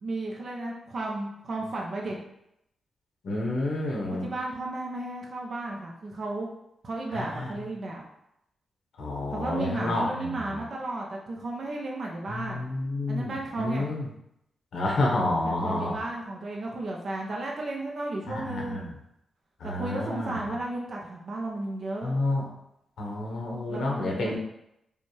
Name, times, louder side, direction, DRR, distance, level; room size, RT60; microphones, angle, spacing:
voice 1, 0.0-2.2 4.2-6.5 6.8-8.0 9.3-12.7 13.1-13.9 15.4-18.9 19.6-22.2 23.7-24.4, right 2 dB, 45° right, -2 dB, 0.6 m, -34 dB
voice 2, 3.2-4.3 7.1-7.5 9.0-10.6 12.3-14.1 14.7-15.9 18.3-18.8 19.6-20.5 22.0-22.5 23.0-24.4, left 2 dB, 70° left, -2 dB, 1.1 m, -29 dB
5.3 x 2.4 x 3.2 m, 0.81 s
wide cardioid pair, 150°, 0 cm